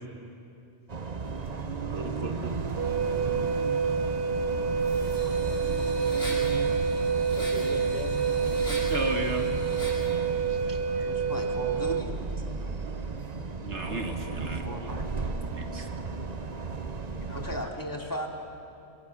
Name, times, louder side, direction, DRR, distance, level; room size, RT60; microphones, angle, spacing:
sound 1, 0.9-17.7, right 4 dB, 40° right, 1.0 m, -34 dB
voice 1, 1.9-2.5 8.9-9.5 10.7-10.8 13.6-14.6 15.5-15.9, right 3 dB, 75° right, 4 dB, 2.1 m, -34 dB
Wind instrument woodwind instrument, 2.8-12.1, right 5 dB, 60° right, 1.0 m, -28 dB
sound 2, 4.8-10.1, equal, 65° left, 8.4 m, -41 dB
voice 2, 7.3-8.3 10.5-11.1 17.1-17.7, left 2 dB, 40° left, 5 dB, 1.6 m, -41 dB
voice 3, 11.0-12.1 14.3-15.1 17.3-18.3, equal, 15° left, 0 dB, 2.7 m, -37 dB
26.5 x 23.0 x 7.3 m, 2.7 s
omnidirectional pair, 1.2 m